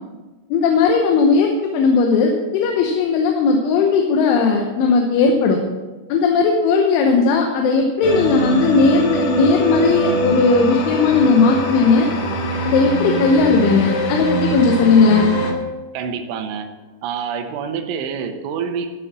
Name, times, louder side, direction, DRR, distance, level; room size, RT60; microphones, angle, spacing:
voice 1, 0.5-5.6 6.1-12.1 12.7-15.3, left 4 dB, 85° left, 2 dB, 3.4 m, -16 dB
sound 1, 8.0-15.5, right 1 dB, 60° left, 2.5 m, -23 dB
voice 2, 15.9-16.7 17.0-18.9, right 6 dB, 85° right, 7 dB, 3.4 m, -27 dB
14.0 x 6.8 x 6.0 m, 1.2 s
omnidirectional pair, 5.4 m